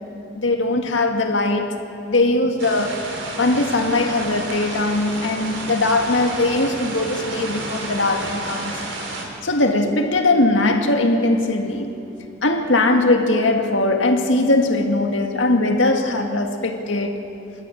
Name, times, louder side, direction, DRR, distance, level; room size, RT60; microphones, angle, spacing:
voice 1, 0.3-1.8 2.1-3.1 3.4-8.8 9.4-11.9 12.4-17.2, left 2 dB, 85° left, 2.0 m, -20 dB
sound 1, 2.6-9.3, right 2 dB, 80° right, 3.6 m, -31 dB
28.0 x 12.5 x 8.9 m
head